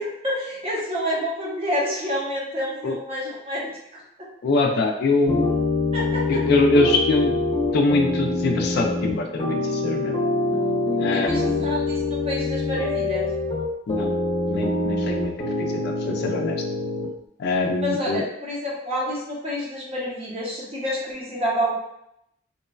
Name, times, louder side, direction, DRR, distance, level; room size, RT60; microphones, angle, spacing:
voice 1, 0.0-4.0 5.9-6.4 11.1-13.3 17.8-21.7, equal, 30° right, -5 dB, 0.7 m, -28 dB
voice 2, 4.4-5.5 6.3-7.4 7.7-10.2 11.0-11.7 13.9-14.1 14.5-15.3 15.6-16.6 17.4-18.2, left 2 dB, 55° left, 2 dB, 0.3 m, -23 dB
sound 1, 5.3-17.1, left 2 dB, 25° left, 0.7 m, -25 dB
3.0 x 2.2 x 2.2 m, 0.79 s
head